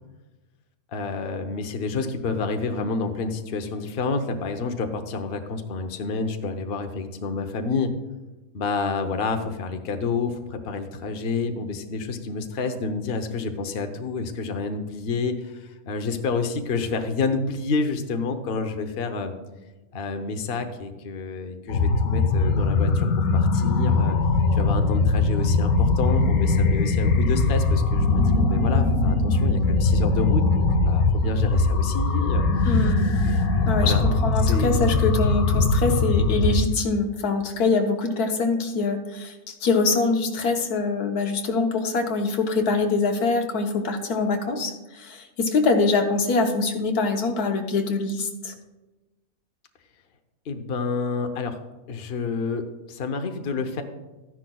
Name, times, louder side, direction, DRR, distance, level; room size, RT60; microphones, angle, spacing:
voice 1, 0.9-7.9 8.5-19.3 19.9-23.1 23.3-24.2 24.5-32.7 33.1-33.4 33.8-34.0 34.4-34.8 50.5-51.6 51.9-53.8, left 4 dB, 45° left, 6 dB, 0.9 m, -29 dB
sound 1, 21.7-36.7, left 3 dB, 75° left, 1.2 m, -21 dB
voice 2, 32.6-33.1 33.7-48.5, left 3 dB, 90° left, 4 dB, 1.5 m, -24 dB
13.5 x 10.0 x 2.3 m, 1.1 s
omnidirectional pair, 1.6 m